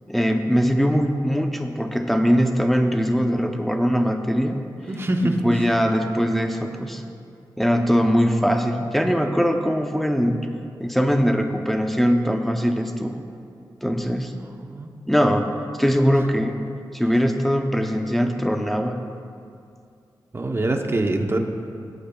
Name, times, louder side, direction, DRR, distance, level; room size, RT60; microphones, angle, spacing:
voice 1, 0.1-4.6 5.2-7.0 7.6-10.5 10.8-13.2 13.8-14.3 15.1-15.5 15.8-16.6 16.9-19.0, equal, ahead, 4 dB, 0.7 m, -21 dB
voice 2, 4.9-5.3 14.6-14.9 20.3-21.4, right 2 dB, 30° right, 3 dB, 0.9 m, -24 dB
17.5 x 8.5 x 2.3 m, 2.4 s
wide cardioid pair, 80°, 8 cm